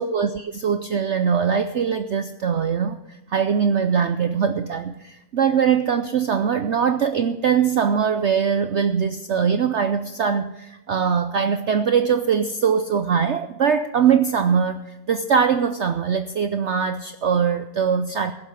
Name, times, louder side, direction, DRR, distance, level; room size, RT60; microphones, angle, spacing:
voice 1, 0.0-18.3, right 7 dB, 80° right, 9 dB, 0.6 m, -22 dB
16.0 x 7.3 x 8.1 m, 0.94 s
omnidirectional pair, 1.9 m